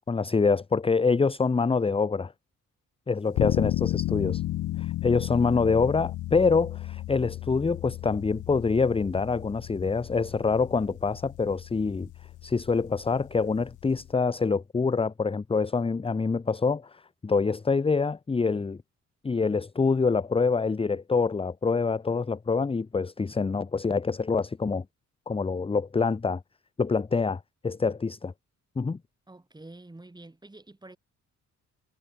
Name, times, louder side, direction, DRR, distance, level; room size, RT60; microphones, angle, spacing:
voice 1, 0.1-2.3 3.1-4.4 4.8-12.1 12.4-18.8 19.2-24.8 25.3-26.4 26.8-28.3 28.8-29.0, left 4 dB, 20° left, 0.8 m, -26 dB
sound 1, 3.4-14.1, left 15 dB, 85° left, 3.3 m, -34 dB
voice 2, 29.3-31.0, right 2 dB, 15° right, 7.5 m, -47 dB
cardioid pair, 90°, 30 cm